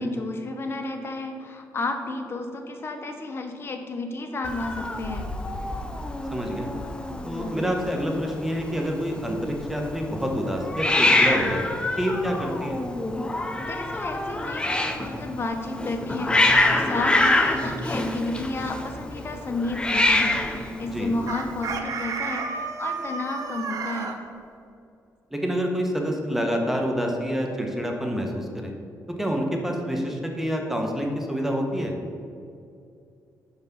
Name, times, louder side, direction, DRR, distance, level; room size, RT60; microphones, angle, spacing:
voice 1, 0.0-5.3 13.6-16.3 16.7-24.1, left 2 dB, 40° left, 4 dB, 1.0 m, -32 dB
Hiss, 4.4-21.8, left 2 dB, 15° left, 0.7 m, -26 dB
voice 2, 6.3-6.7 7.2-11.6 12.0-12.8 20.9-21.1 25.3-28.7 29.2-31.9, equal, 5° right, 1 dB, 1.2 m, -27 dB
Chicken rooster, 21.3-24.2, right 5 dB, 65° right, 0.9 m, -31 dB
5.9 x 5.3 x 6.9 m, 2.5 s
cardioid pair, 105°, 6 cm